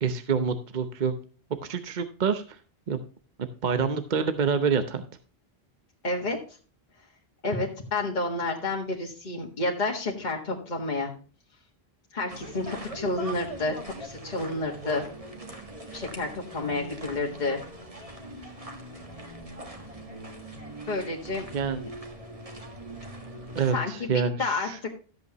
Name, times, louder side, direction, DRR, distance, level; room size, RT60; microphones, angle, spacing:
voice 1, 0.0-1.1 1.6-2.6 2.9-3.0 3.4-5.0 21.5-21.8 23.5-24.8, right 6 dB, 50° right, 10 dB, 0.9 m, -27 dB
voice 2, 6.0-6.4 7.4-11.1 12.1-15.1 15.9-17.6 20.9-21.5 23.7-24.1 24.4-24.7, left 2 dB, 45° left, 0 dB, 1.8 m, -30 dB
sound 1, 12.3-23.7, right 1 dB, 35° right, 1.9 m, -41 dB
13.5 x 8.2 x 3.0 m, 0.38 s
omnidirectional pair, 1.0 m